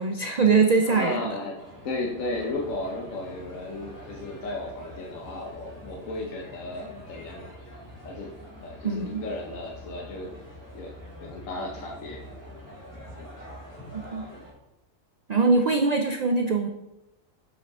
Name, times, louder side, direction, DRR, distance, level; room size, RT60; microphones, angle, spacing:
voice 1, 0.0-1.3 8.8-9.2 14.1-14.3 15.3-16.7, right 4 dB, 70° right, 4 dB, 0.3 m, -22 dB
voice 2, 0.8-1.6 1.8-7.6 8.0-8.3 8.6-10.4 10.7-12.2 13.1-13.3, left 2 dB, 70° left, -1 dB, 1.4 m, -34 dB
sound 1, 1.6-14.5, equal, 15° left, 2.1 m, -45 dB
8.0 x 5.9 x 3.6 m, 0.93 s
omnidirectional pair, 1.4 m